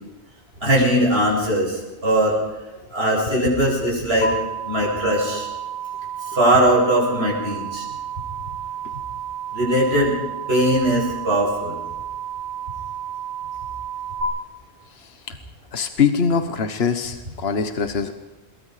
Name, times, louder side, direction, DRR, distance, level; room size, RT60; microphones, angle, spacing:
voice 1, 0.6-2.4 2.9-4.3 4.6-5.5 6.3-7.9 9.5-10.1 10.5-11.8, right 1 dB, 70° right, -4 dB, 8.2 m, -20 dB
sound 1, 4.2-14.2, right 8 dB, 15° right, 5.5 m, -31 dB
voice 2, 15.7-18.1, left 6 dB, 70° left, 8 dB, 1.4 m, -22 dB
27.5 x 22.0 x 5.0 m, 1.1 s
omnidirectional pair, 1.1 m